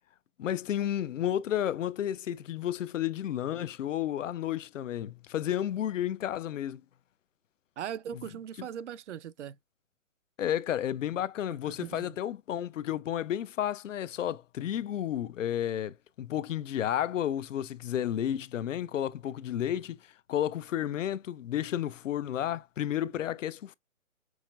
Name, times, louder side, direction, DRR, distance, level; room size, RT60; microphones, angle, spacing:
voice 1, 0.4-6.8 8.6-8.7 10.4-20.0 20.3-23.7, left 11 dB, 70° left, 0.5 m, -32 dB
voice 2, 7.8-9.6 11.6-12.2, right 9 dB, 65° right, 0.5 m, -39 dB
6.2 x 3.1 x 2.4 m
hypercardioid pair, 160°, 40 cm